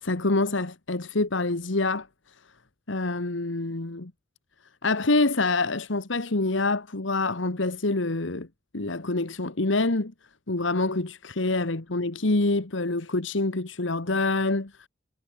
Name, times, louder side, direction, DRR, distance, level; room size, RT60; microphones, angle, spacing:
voice 1, 0.0-2.1 2.9-4.1 4.8-8.5 8.7-10.1 10.5-14.9, left 2 dB, 80° left, 1.5 m, -26 dB
head